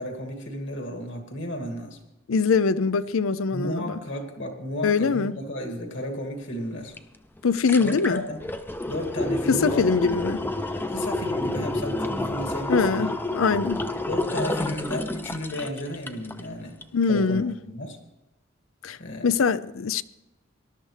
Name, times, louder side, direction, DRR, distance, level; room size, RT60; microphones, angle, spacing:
voice 1, 0.0-2.0 3.5-7.0 7.8-8.4 8.9-10.0 10.9-13.1 14.1-16.8 17.1-17.4 17.7-18.0 19.0-19.3, equal, 60° left, 2.4 m, -33 dB
voice 2, 2.3-4.0 4.8-5.4 7.4-8.2 9.5-10.4 12.7-13.9 16.9-17.5 18.8-19.0 19.2-20.0, left 5 dB, 85° left, 0.5 m, -23 dB
sound 1, 7.0-7.1 7.4-16.4 16.8-16.9, left 2 dB, 10° left, 0.6 m, -29 dB
19.5 x 12.0 x 3.3 m
head